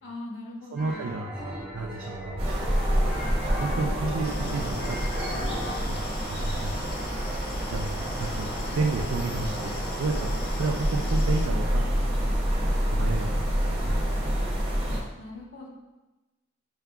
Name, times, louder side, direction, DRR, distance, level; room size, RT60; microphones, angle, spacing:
voice 1, 0.0-1.1 14.9-15.7, left 2 dB, 65° left, -3 dB, 1.0 m, -41 dB
voice 2, 0.7-1.3 1.7-5.3 5.9-7.0 7.7-8.5 8.7-10.3 10.6-12.1 12.9-14.4, right 3 dB, 80° right, 1 dB, 0.4 m, -32 dB
sound 1, 0.8-5.8, equal, 5° right, 1.4 m, -36 dB
sound 2, 2.4-15.0, equal, 30° right, 1.2 m, -27 dB
sound 3, 4.2-11.5, left 6 dB, 50° left, 0.4 m, -45 dB
5.6 x 3.7 x 2.2 m, 1.1 s
head